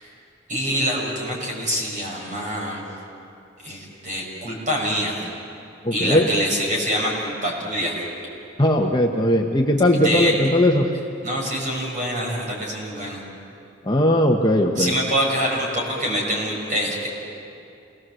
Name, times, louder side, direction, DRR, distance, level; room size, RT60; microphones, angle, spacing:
voice 1, 0.5-2.8 3.6-5.2 5.9-8.0 9.9-10.3 11.2-13.2 14.7-17.1, equal, 40° right, -2 dB, 6.1 m, -25 dB
voice 2, 5.8-6.3 8.6-10.8 13.9-14.9, left 1 dB, 20° left, 1 dB, 1.1 m, -18 dB
28.5 x 20.5 x 7.7 m, 2.6 s
head